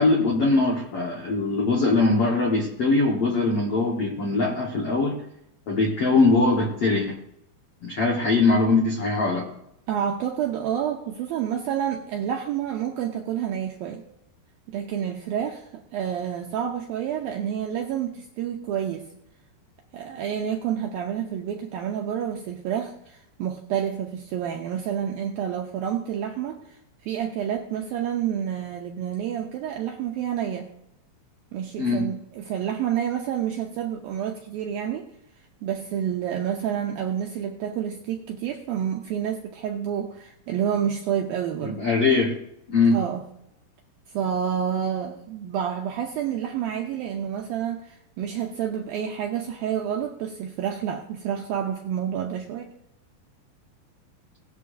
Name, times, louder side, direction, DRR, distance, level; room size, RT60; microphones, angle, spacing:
voice 1, 0.0-5.2 5.7-7.2 7.8-9.5 31.8-32.0 41.6-42.3 42.7-43.0, left 3 dB, 75° left, 0 dB, 1.4 m, -21 dB
voice 2, 9.9-14.0 14.7-19.1 19.9-26.8 27.0-30.7 31.5-35.1 35.6-41.8 42.9-43.2 44.1-52.7, right 9 dB, 80° right, 2 dB, 2.1 m, -29 dB
18.0 x 11.5 x 2.7 m, 0.80 s
omnidirectional pair, 5.2 m